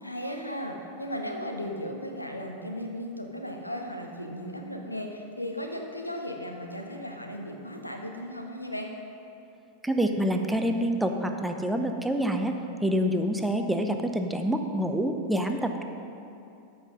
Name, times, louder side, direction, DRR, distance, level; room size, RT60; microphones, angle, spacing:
voice 1, 0.0-8.9, equal, 85° left, 3 dB, 1.0 m, -36 dB
voice 2, 9.8-15.8, equal, 5° right, 5 dB, 0.6 m, -27 dB
14.0 x 5.7 x 5.2 m, 2.7 s
figure-of-eight pair, 90°, 0 cm